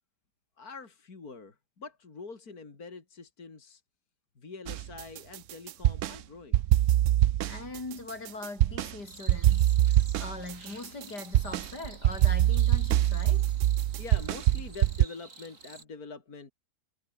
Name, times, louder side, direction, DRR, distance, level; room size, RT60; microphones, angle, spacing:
voice 1, 0.6-3.8 4.4-6.8 13.8-16.5, left 4 dB, 65° left, 3.4 m, -45 dB
sound 1, 4.7-6.2 6.5-8.9 9.3-15.0, right 13 dB, 65° right, 0.8 m, -24 dB
voice 2, 7.5-13.5, left 3 dB, 85° left, 5.7 m, -41 dB
sound 2, 9.0-15.8, right 4 dB, 50° right, 3.3 m, -51 dB
omnidirectional pair, 1.7 m